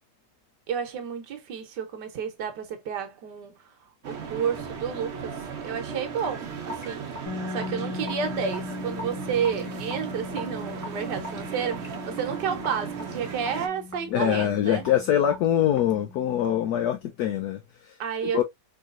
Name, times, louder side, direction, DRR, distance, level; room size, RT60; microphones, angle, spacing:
voice 1, 0.7-3.6 4.0-5.4 5.6-14.8 18.0-18.4, right 7 dB, 70° right, 1.5 m, -31 dB
sound 1, 4.0-13.7, right 6 dB, 50° right, 0.9 m, -36 dB
Raindrop / Drip, 6.2-16.7, equal, 10° right, 1.1 m, -43 dB
sound 2, 7.3-17.0, left 4 dB, 50° left, 2.1 m, -40 dB
voice 2, 14.1-18.0 18.3-18.4, left 10 dB, 70° left, 1.0 m, -24 dB
4.8 x 2.9 x 2.4 m
omnidirectional pair, 1.9 m